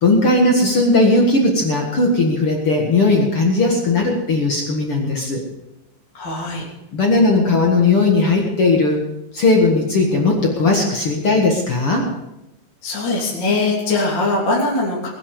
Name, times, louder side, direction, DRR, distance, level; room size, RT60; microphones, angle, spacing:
voice 1, 0.0-5.4 6.9-9.0 9.3-12.1, left 2 dB, 60° left, 0 dB, 1.4 m, -17 dB
voice 2, 6.1-6.6 12.8-15.1, left 2 dB, 30° left, -5 dB, 3.1 m, -21 dB
21.0 x 9.9 x 5.4 m, 0.92 s
omnidirectional pair, 5.3 m